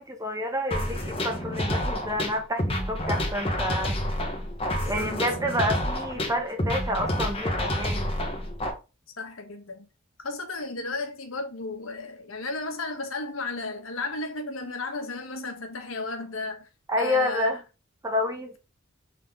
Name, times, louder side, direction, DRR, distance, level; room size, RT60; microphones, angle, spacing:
voice 1, 0.0-4.0 4.8-8.1 16.9-17.6 18.0-18.6, left 1 dB, 15° right, 1.3 m, -29 dB
sound 1, 0.7-8.7, left 1 dB, 30° left, 1.4 m, -29 dB
voice 2, 4.7-5.3 9.2-9.9 10.2-16.7 17.0-17.5, left 3 dB, 85° left, 1.4 m, -34 dB
6.6 x 3.9 x 3.7 m
head